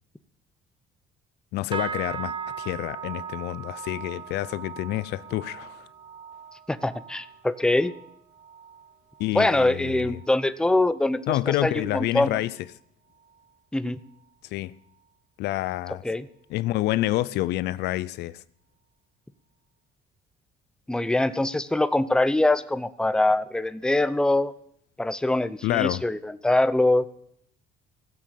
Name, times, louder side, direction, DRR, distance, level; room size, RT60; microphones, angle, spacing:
voice 1, 1.5-5.9 9.2-10.2 11.3-12.5 14.5-14.7 15.4-16.0 16.5-18.4 25.6-26.0, left 16 dB, 80° left, 0.5 m, -28 dB
sound 1, 1.7-11.3 11.6-12.0 12.4-12.7 13.3-13.4, right 7 dB, 30° right, 1.0 m, -39 dB
voice 2, 6.7-7.9 9.3-12.4 13.7-14.0 16.0-16.3 20.9-24.5 25.0-27.1, left 2 dB, 5° left, 0.7 m, -23 dB
16.0 x 7.6 x 7.5 m
cardioid pair, 110°, 17 cm